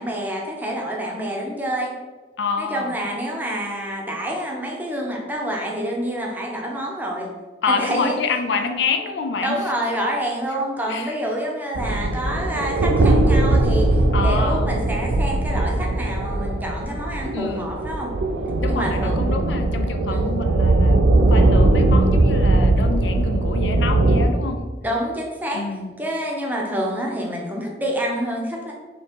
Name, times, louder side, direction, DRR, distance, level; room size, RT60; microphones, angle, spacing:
voice 1, 0.0-1.9 2.6-7.3 7.7-8.2 9.4-18.1 18.7-19.2 20.1-20.3 24.8-25.6 26.0-28.7, right 1 dB, 10° right, -1 dB, 0.6 m, -27 dB
voice 2, 2.4-3.0 7.6-9.6 10.9-11.1 14.1-14.7 17.3-17.7 18.6-24.6 25.5-25.9, left 4 dB, 75° left, 6 dB, 0.5 m, -27 dB
sound 1, 11.7-24.2, right 2 dB, 85° right, 0.4 m, -19 dB
3.7 x 2.9 x 4.3 m, 1.3 s
head